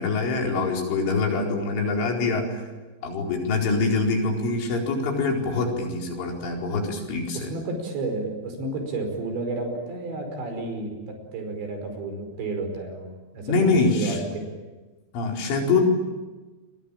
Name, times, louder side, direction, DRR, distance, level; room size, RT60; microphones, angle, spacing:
voice 1, 0.0-2.6 3.0-7.5 13.5-14.2 15.1-15.8, left 3 dB, 85° left, 0 dB, 7.0 m, -24 dB
voice 2, 7.3-13.6 13.9-14.4, right 2 dB, 70° right, 5 dB, 7.4 m, -31 dB
28.5 x 23.5 x 8.9 m, 1.2 s
omnidirectional pair, 5.4 m